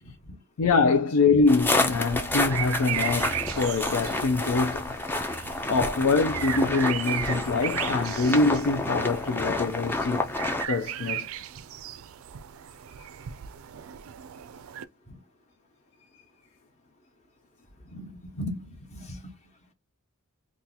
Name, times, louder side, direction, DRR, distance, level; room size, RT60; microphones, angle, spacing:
voice 1, 0.0-0.4 15.1-15.2 17.8-19.4, left 1 dB, 30° left, 1.0 m, -39 dB
voice 2, 0.6-4.9 5.7-10.3 10.7-11.3, left 3 dB, 90° left, 0.5 m, -24 dB
sound 1, 1.5-10.7, left 2 dB, 10° left, 0.4 m, -29 dB
sound 2, 1.8-14.8, right 10 dB, 70° right, 0.4 m, -36 dB
2.8 x 2.4 x 3.8 m
head